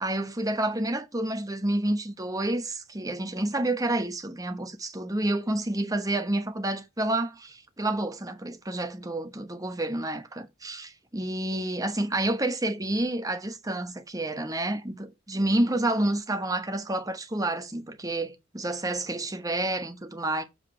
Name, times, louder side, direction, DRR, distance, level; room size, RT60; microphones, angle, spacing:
voice 1, 0.0-20.4, right 1 dB, 15° right, 1.0 m, -29 dB
7.6 x 4.8 x 5.5 m
head